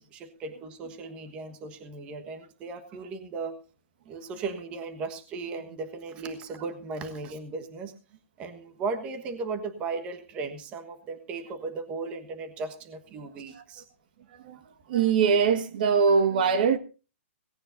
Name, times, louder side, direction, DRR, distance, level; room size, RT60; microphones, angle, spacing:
voice 1, 0.0-3.6 4.1-7.9 8.4-13.8, right 4 dB, 15° right, 1.3 m, -36 dB
voice 2, 14.9-16.8, right 6 dB, 40° right, 1.7 m, -22 dB
18.0 x 17.0 x 2.6 m
hypercardioid pair, 175°, 7 cm